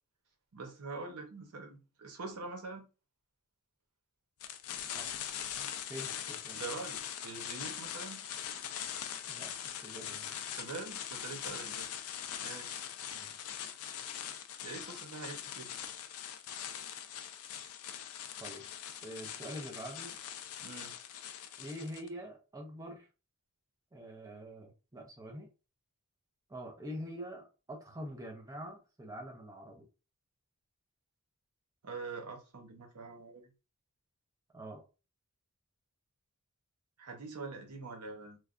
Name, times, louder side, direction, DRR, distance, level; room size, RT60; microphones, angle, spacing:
voice 1, 0.5-2.9 5.6-5.7 6.5-8.2 10.6-11.9 12.4-12.7 14.6-15.7 20.6-20.9 31.8-33.5 37.0-38.4, right 3 dB, 90° right, 0.8 m, -44 dB
sound 1, 4.4-22.1, left 9 dB, 70° left, 0.4 m, -42 dB
voice 2, 5.9-6.6 9.3-9.5 9.8-10.3 13.1-13.3 18.4-18.6 19.0-20.1 21.6-23.1 23.9-25.5 26.5-29.9 34.5-34.8, equal, 15° right, 0.6 m, -45 dB
3.2 x 2.2 x 2.4 m
head